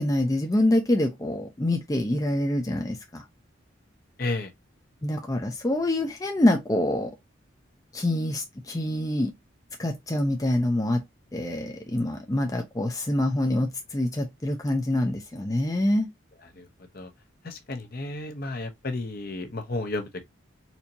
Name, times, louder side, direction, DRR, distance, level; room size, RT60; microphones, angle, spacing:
voice 1, 0.0-3.2 5.0-7.1 7.9-9.3 9.8-11.0 11.3-16.1, left 1 dB, 15° left, 0.5 m, -25 dB
voice 2, 4.2-4.5 16.6-16.7 16.9-17.1 17.4-20.2, left 2 dB, 50° left, 0.8 m, -32 dB
4.4 x 2.8 x 2.6 m
head